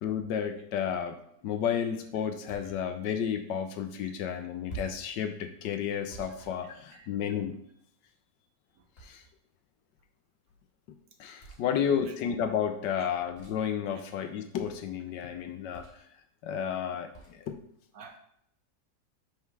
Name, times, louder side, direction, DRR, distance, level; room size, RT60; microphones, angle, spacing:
voice 1, 0.0-1.2 1.4-7.6 9.0-9.2 11.2-15.8 16.4-17.6, left 8 dB, 75° left, 8 dB, 1.3 m, -32 dB
sound 1, 2.5-2.8 4.7-5.1 6.1-7.3 8.9-9.5 11.4-11.7 13.3-13.7 15.7-16.1 17.1-17.4, right 3 dB, 35° left, 2.1 m, -46 dB
voice 2, 6.6-7.1 11.6-12.1 13.0-13.1 17.9-18.2, right 4 dB, 60° right, 4 dB, 1.2 m, -51 dB
5.7 x 4.3 x 6.0 m, 0.71 s
omnidirectional pair, 2.0 m